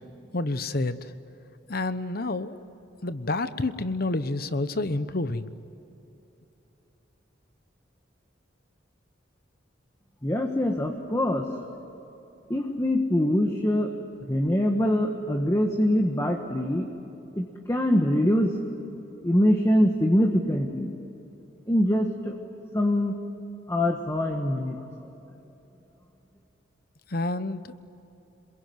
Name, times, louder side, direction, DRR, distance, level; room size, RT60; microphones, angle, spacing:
voice 1, 0.3-1.1 1.7-2.6 3.0-5.5 27.1-27.7, left 2 dB, 50° left, 12 dB, 1.0 m, -29 dB
voice 2, 10.2-11.8 12.5-13.9 14.3-16.9 17.3-18.6 19.2-21.0 21.7-22.4 22.7-23.2 23.7-24.8, left 1 dB, 15° left, 3 dB, 1.5 m, -24 dB
27.5 x 22.0 x 9.5 m, 3.0 s
head